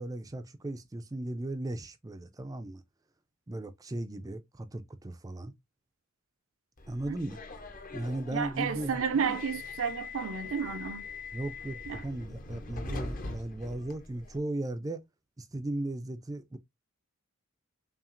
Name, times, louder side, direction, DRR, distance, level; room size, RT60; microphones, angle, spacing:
voice 1, 0.0-2.8 3.5-5.5 6.9-7.4 7.9-9.4 11.3-15.0 15.4-16.6, right 1 dB, 15° right, 0.4 m, -37 dB
Subway metro underground, 6.8-14.4, left 3 dB, 40° left, 0.7 m, -42 dB
voice 2, 8.3-11.1 11.9-12.0, right 6 dB, 65° right, 0.5 m, -32 dB
5.6 x 2.4 x 2.5 m
head